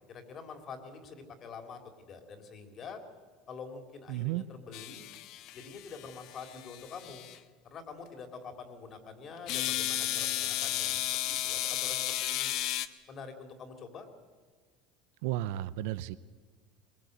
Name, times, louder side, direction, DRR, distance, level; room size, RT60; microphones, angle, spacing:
voice 1, 0.1-3.0 3.5-5.1 5.5-7.3 7.6-12.5 13.1-14.1, left 5 dB, 40° left, 6 dB, 3.3 m, -46 dB
voice 2, 4.1-4.4 15.2-16.2, right 14 dB, 80° right, 15 dB, 0.7 m, -33 dB
sound 1, 4.7-7.4 9.5-12.9, left 13 dB, 60° left, 1.0 m, -34 dB
21.5 x 21.0 x 8.1 m, 1.5 s
supercardioid pair, 115°, 0 cm